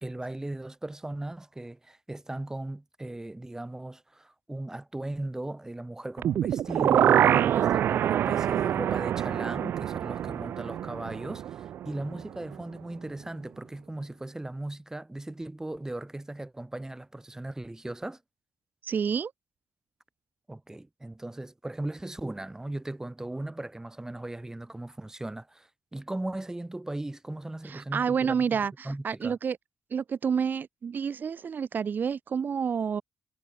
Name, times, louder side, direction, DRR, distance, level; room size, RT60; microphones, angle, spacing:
voice 1, 0.0-18.2 20.5-29.4, right 1 dB, 15° right, 2.9 m, -38 dB
sound 1, 6.2-12.2 12.5-12.6, right 10 dB, 85° right, 1.5 m, -25 dB
voice 2, 18.8-19.3 27.6-29.6 29.9-33.0, right 6 dB, 60° right, 1.5 m, -29 dB
cardioid pair, 75°, 4 cm